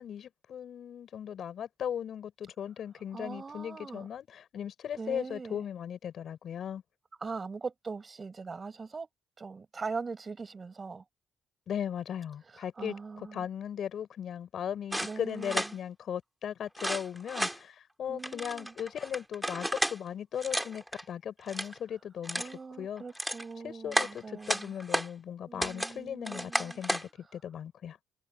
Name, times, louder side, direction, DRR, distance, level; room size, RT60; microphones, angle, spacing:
voice 1, 0.0-6.8 11.7-22.4 22.8-23.0 23.6-28.0, left 9 dB, 65° left, 7.2 m, -37 dB
voice 2, 3.1-4.1 5.0-5.6 7.2-9.1 9.4-11.0 12.8-13.5 15.0-15.7 18.1-18.7 22.4-24.7 25.5-26.8, right 4 dB, 35° right, 6.9 m, -41 dB
sound 1, 14.9-15.7 16.7-17.6 18.2-20.0 20.4-21.0 21.4-21.8 22.2-22.5 23.0-23.4 23.9-25.1 25.6-25.9 26.2-27.1, right 1 dB, 5° right, 3.4 m, -32 dB
cardioid pair, 90°, 0 cm